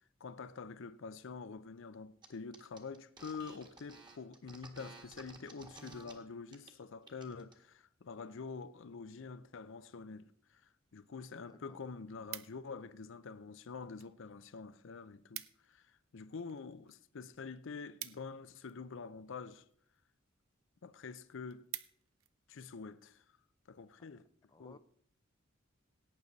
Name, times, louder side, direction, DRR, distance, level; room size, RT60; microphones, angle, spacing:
voice 1, 0.0-19.6 20.8-21.7 22.5-23.2 23.7-24.2 24.6-24.8, left 4 dB, 65° left, 0.6 m, -47 dB
sound 1, 2.2-2.3 2.5-6.1 6.5-6.7 7.0-7.5, right 3 dB, 25° right, 1.7 m, -54 dB
voice 2, 11.5-11.8 24.0-24.2 24.5-24.8, left 2 dB, 20° left, 0.5 m, -60 dB
sound 2, 11.7-12.9 13.6-14.1 14.4-14.5 14.8-14.9 15.1-15.8 16.1-19.0 19.7-20.0 20.5-20.6 21.0-21.1 21.3-22.3 22.8-23.0, right 14 dB, 90° right, 0.6 m, -48 dB
17.0 x 8.8 x 4.0 m
head